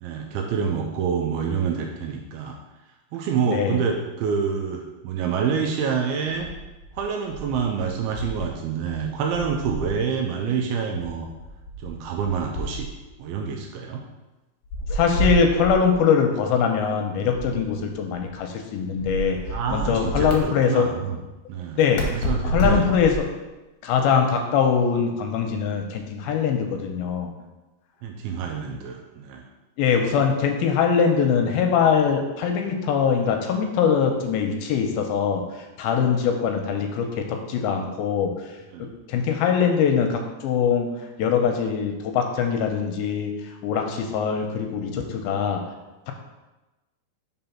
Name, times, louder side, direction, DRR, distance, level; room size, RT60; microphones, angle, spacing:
voice 1, 0.0-2.6 3.1-6.5 6.9-11.3 11.8-12.9 13.2-14.0 17.5-17.6 19.5-21.2 21.5-21.8 22.1-22.9 28.0-29.5 38.7-38.9, right 6 dB, 80° right, 2 dB, 2.4 m, -27 dB
voice 2, 3.5-3.8 14.9-19.4 19.7-20.9 21.8-22.1 22.4-23.2 23.8-27.3 29.8-38.5 38.8-40.9 41.2-45.6, left 6 dB, 80° left, 3 dB, 2.4 m, -22 dB
sound 1, 6.3-8.6 8.8-10.1 11.0-13.2 14.6-16.0 17.3-18.4 19.0-20.4 22.0-23.4, right 1 dB, 65° left, 2.1 m, -30 dB
5.7 x 3.9 x 5.7 m, 1.1 s
omnidirectional pair, 4.5 m